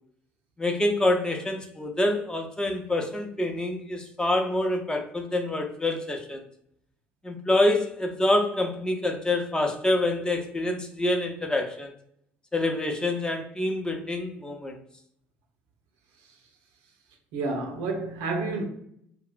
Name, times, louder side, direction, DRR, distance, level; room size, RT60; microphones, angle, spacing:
voice 1, 0.6-6.4 7.2-11.9 12.5-14.8, left 1 dB, 15° left, 0.5 m, -26 dB
voice 2, 17.3-18.6, right 3 dB, 65° right, 0.5 m, -29 dB
2.8 x 2.4 x 2.2 m
figure-of-eight pair, 55°, 6 cm